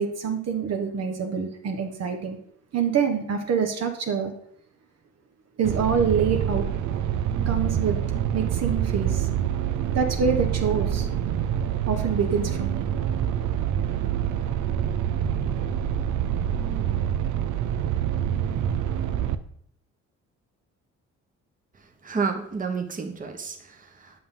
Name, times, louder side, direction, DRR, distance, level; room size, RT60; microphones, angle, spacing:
voice 1, 0.0-2.4 2.7-4.3 5.6-6.7 7.4-8.0 8.3-9.3 9.9-11.1 11.9-12.9, right 6 dB, 55° right, 4 dB, 1.1 m, -26 dB
sound 1, 5.6-19.3, right 9 dB, 75° right, 0.6 m, -26 dB
voice 2, 22.0-24.2, right 5 dB, 25° right, 4 dB, 1.1 m, -30 dB
7.7 x 5.5 x 3.8 m, 0.66 s
cardioid pair, 90°, 30 cm